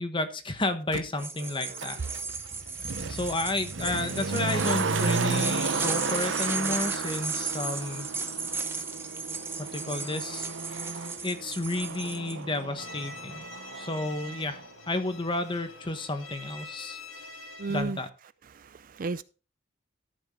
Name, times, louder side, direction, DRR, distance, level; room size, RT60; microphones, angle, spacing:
voice 1, 0.0-2.0 3.1-8.1 9.6-10.5 11.2-13.4 13.7-14.6 14.9-17.0 17.7-18.1, left 2 dB, 25° left, 1.2 m, -31 dB
Motor vehicle (road), 0.9-1.0 1.8-14.7 15.0-15.1, right 4 dB, 75° right, 0.9 m, -33 dB
sound 1, 1.2-12.3, right 4 dB, 10° right, 0.9 m, -35 dB
voice 2, 1.4-2.2 17.6-18.0 18.5-19.2, right 3 dB, 45° right, 0.4 m, -35 dB
Bowed string instrument, 12.8-17.8, left 3 dB, 90° left, 1.9 m, -45 dB
13.5 x 7.2 x 3.7 m
head